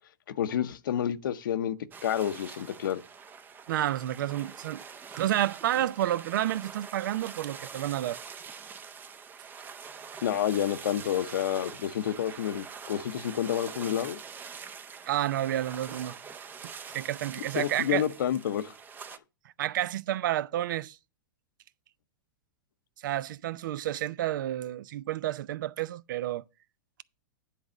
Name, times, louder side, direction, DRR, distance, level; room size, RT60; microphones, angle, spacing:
voice 1, 0.4-1.8 2.0-3.0 10.2-14.2 17.5-18.7, left 10 dB, 80° left, 0.8 m, -29 dB
sound 1, 1.9-19.2, right 6 dB, 15° right, 0.5 m, -45 dB
voice 2, 3.7-4.8 5.2-8.2 15.1-16.2 16.9-18.0 19.6-21.0 23.0-26.4, right 13 dB, 70° right, 0.5 m, -30 dB
10.0 x 4.1 x 6.2 m
hypercardioid pair, 125°, 11 cm